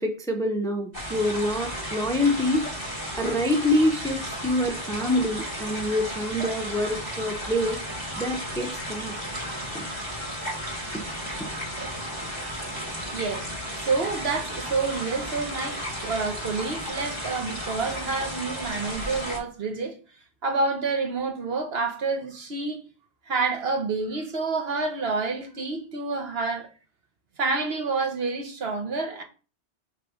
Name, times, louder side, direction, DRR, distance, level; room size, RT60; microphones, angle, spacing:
voice 1, 0.0-2.8 3.2-7.8 8.2-9.1 9.7-9.9 10.9-11.0, left 1 dB, 5° left, 0.7 m, -26 dB
sound 1, 0.9-19.4, equal, 35° right, 2.3 m, -34 dB
voice 2, 13.1-13.5 13.8-20.0 20.4-22.8 23.3-26.7 27.4-29.2, right 4 dB, 60° right, 1.2 m, -28 dB
6.5 x 3.4 x 5.0 m
omnidirectional pair, 1.2 m